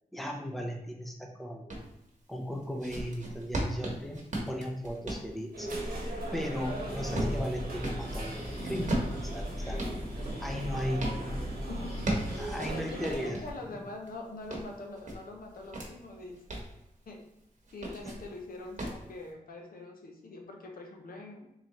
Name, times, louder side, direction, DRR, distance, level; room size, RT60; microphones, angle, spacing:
voice 1, 0.1-1.8 2.3-6.0 6.3-10.0 10.4-11.1 12.4-13.4, equal, ahead, 1 dB, 0.5 m, -37 dB
sound 1, 1.7-1.9 2.5-8.1 8.7-11.2 11.7-13.6 14.1-15.9 16.3-16.7 17.6-18.3 18.8-19.0, right 1 dB, 55° right, 1.0 m, -36 dB
sound 2, 5.5-13.3, right 1 dB, 85° right, 1.1 m, -40 dB
Breathing, 6.4-13.0, equal, 35° left, 1.5 m, -38 dB
voice 2, 11.7-16.4 17.1-17.2 17.7-21.5, left 2 dB, 75° left, 2 dB, 0.7 m, -43 dB
3.8 x 3.1 x 2.9 m, 0.85 s
wide cardioid pair, 90°, 15 cm